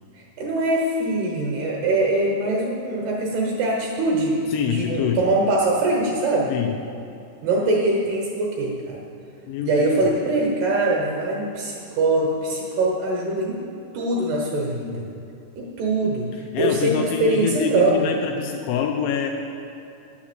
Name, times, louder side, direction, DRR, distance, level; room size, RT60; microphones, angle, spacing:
voice 1, 0.4-6.5 7.4-9.0 9.6-13.6 13.9-15.0 15.6-16.3 16.6-18.1, right 2 dB, 70° right, -2 dB, 2.7 m, -22 dB
voice 2, 4.5-5.3 6.5-6.8 9.5-10.1 16.5-19.3, left 7 dB, 80° left, 3 dB, 2.8 m, -25 dB
9.7 x 7.3 x 7.3 m, 2.7 s
omnidirectional pair, 5.8 m